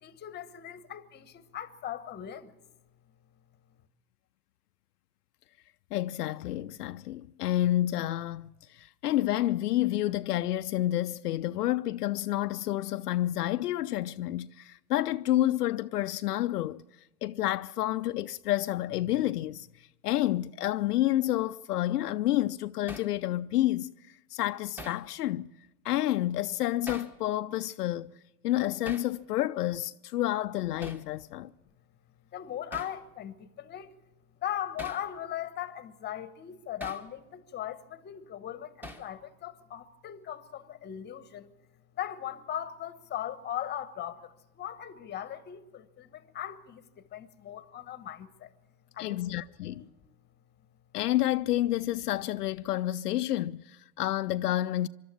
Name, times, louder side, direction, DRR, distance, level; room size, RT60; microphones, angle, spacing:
voice 1, 0.0-2.5 32.3-33.9 34.4-41.5 42.0-48.5 48.9-49.9, left 11 dB, 20° left, 1.1 m, -39 dB
voice 2, 5.9-16.8 17.2-25.5 25.8-28.1 28.4-31.5 49.0-49.8 50.9-54.9, left 14 dB, 75° left, 0.6 m, -29 dB
Hammer, 22.9-23.1 24.8-25.0 26.9-27.2 28.8-29.1 30.8-31.1 32.7-33.0 34.8-35.1 36.8-37.1 38.8-39.1, equal, 5° right, 1.2 m, -42 dB
25.0 x 12.5 x 8.6 m
hypercardioid pair, 105°, 47 cm